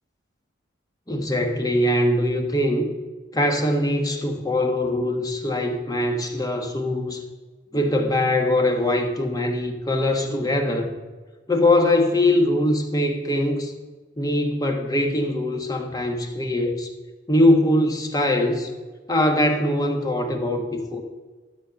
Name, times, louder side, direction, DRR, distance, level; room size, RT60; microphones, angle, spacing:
voice 1, 1.1-2.9 3.3-7.2 7.7-10.9 11.5-13.7 14.2-16.9 17.3-18.7 19.1-21.0, left 1 dB, 20° left, 3 dB, 1.3 m, -22 dB
12.5 x 8.4 x 5.2 m, 1.3 s
head